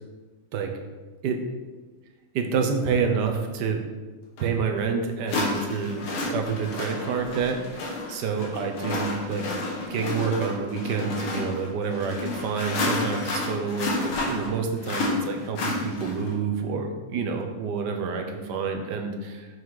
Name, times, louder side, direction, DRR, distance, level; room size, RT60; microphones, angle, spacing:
voice 1, 2.3-3.8 4.4-9.4 9.9-19.5, right 5 dB, 60° right, 4 dB, 1.4 m, -28 dB
sound 1, 4.4-4.5 5.3-16.3, left 2 dB, 80° left, 2.1 m, -30 dB
6.4 x 5.5 x 4.8 m, 1.3 s
omnidirectional pair, 2.2 m